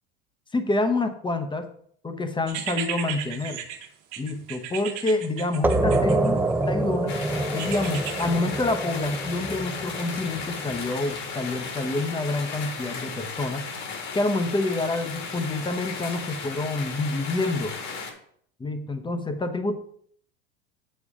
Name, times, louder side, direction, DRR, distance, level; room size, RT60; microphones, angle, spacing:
voice 1, 0.5-1.7 2.0-3.6 4.2-7.2 7.5-13.7 14.1-17.8 18.6-19.8, left 2 dB, 15° left, 8 dB, 0.9 m, -27 dB
sound 1, 2.5-6.7 7.6-8.2, right 9 dB, 65° right, 1.3 m, -35 dB
sound 2, 5.6-11.0, right 2 dB, 5° right, 0.5 m, -26 dB
sound 3, 7.1-18.1, left 5 dB, 50° left, 1.9 m, -35 dB
7.2 x 6.5 x 3.6 m, 0.63 s
supercardioid pair, 105°, 36 cm